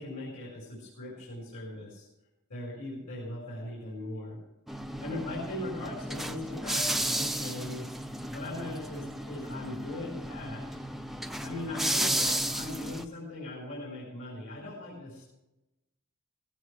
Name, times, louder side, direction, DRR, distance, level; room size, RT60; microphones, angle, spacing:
voice 1, 0.0-2.1 2.5-4.4 5.0-7.9 8.3-10.8 11.4-15.3, left 1 dB, 60° left, -4 dB, 4.3 m, -39 dB
sound 1, 4.7-13.0, right 1 dB, ahead, 0.5 m, -33 dB
15.5 x 15.5 x 3.3 m, 0.95 s
head